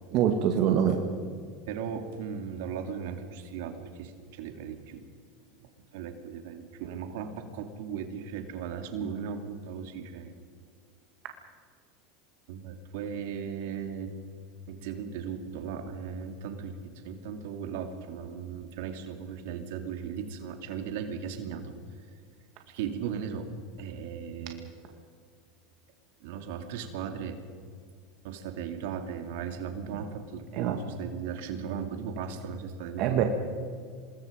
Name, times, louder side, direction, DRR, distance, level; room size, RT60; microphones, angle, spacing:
voice 1, 0.1-1.0 30.5-30.8 33.0-33.2, right 9 dB, 55° right, 4 dB, 2.1 m, -24 dB
voice 2, 1.7-5.0 5.6-10.3 12.5-14.1 14.7-21.7 22.7-24.7 26.2-27.4 28.2-33.3, right 7 dB, 75° right, 6 dB, 2.7 m, -37 dB
26.0 x 21.0 x 5.3 m, 2.1 s
hypercardioid pair, 105°, 0 cm